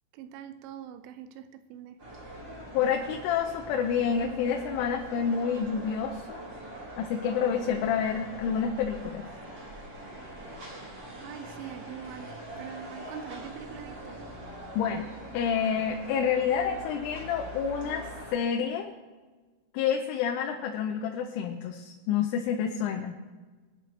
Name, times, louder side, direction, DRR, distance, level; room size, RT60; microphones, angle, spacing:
voice 1, 0.1-2.0 11.2-14.2, right 8 dB, 90° right, 3.2 m, -43 dB
sound 1, 2.0-18.3, right 1 dB, 30° right, 2.5 m, -43 dB
voice 2, 2.7-6.5 7.0-9.3 14.8-15.1 15.3-18.9 19.7-23.2, left 7 dB, 85° left, 3.4 m, -28 dB
22.5 x 11.5 x 3.3 m
omnidirectional pair, 5.5 m